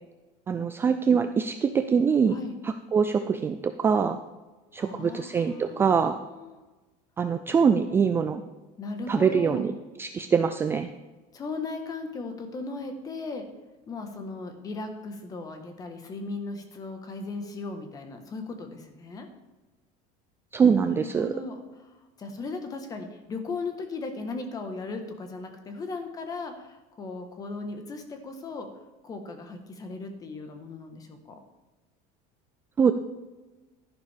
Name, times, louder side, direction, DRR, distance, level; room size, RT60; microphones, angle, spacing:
voice 1, 0.5-2.4 2.6-4.2 4.7-6.2 7.2-8.4 9.1-9.7 10.0-10.9 20.5-21.3 32.8-32.9, right 6 dB, 15° right, 8 dB, 0.3 m, -23 dB
voice 2, 4.8-6.6 8.8-9.7 11.3-13.5 13.9-19.3 20.7-21.6 21.9-28.7 29.0-31.4, left 3 dB, 20° left, 6 dB, 1.3 m, -37 dB
12.0 x 11.0 x 3.5 m, 1.2 s
cardioid pair, 175°, 17 cm